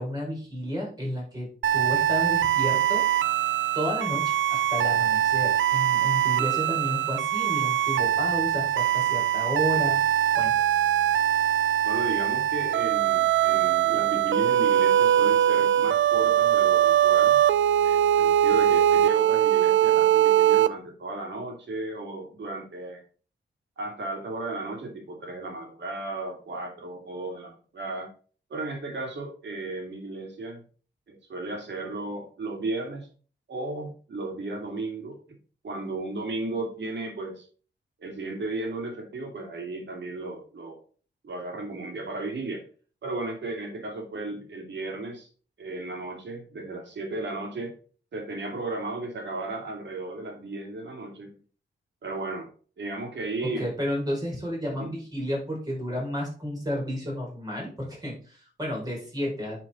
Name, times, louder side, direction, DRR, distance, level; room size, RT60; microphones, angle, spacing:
voice 1, 0.0-3.0 3.7-10.0 10.3-10.5 53.4-59.6, equal, 20° right, -3 dB, 4.4 m, -32 dB
sound 1, 1.6-20.7, right 11 dB, 90° right, 0.5 m, -22 dB
voice 2, 11.8-17.4 17.7-23.0 23.8-28.1 28.5-30.6 31.1-33.1 33.5-35.2 35.6-37.5 38.0-40.8 41.2-42.6 43.0-45.3 45.6-47.7 48.1-51.4 52.0-52.5 52.8-53.7 54.6-54.9, right 2 dB, 70° right, 2 dB, 2.5 m, -34 dB
9.5 x 4.5 x 4.2 m, 0.40 s
wide cardioid pair, 130°, 19 cm